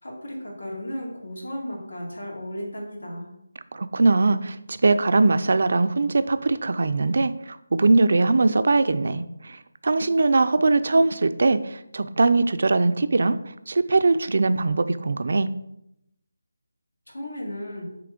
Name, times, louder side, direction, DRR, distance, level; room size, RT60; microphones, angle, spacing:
voice 1, 0.0-3.3 17.1-17.8, equal, 85° left, -2 dB, 2.6 m, -34 dB
voice 2, 3.7-15.5, right 3 dB, 55° right, 11 dB, 0.4 m, -21 dB
6.8 x 3.1 x 5.0 m, 0.81 s
figure-of-eight pair, 170°, 0 cm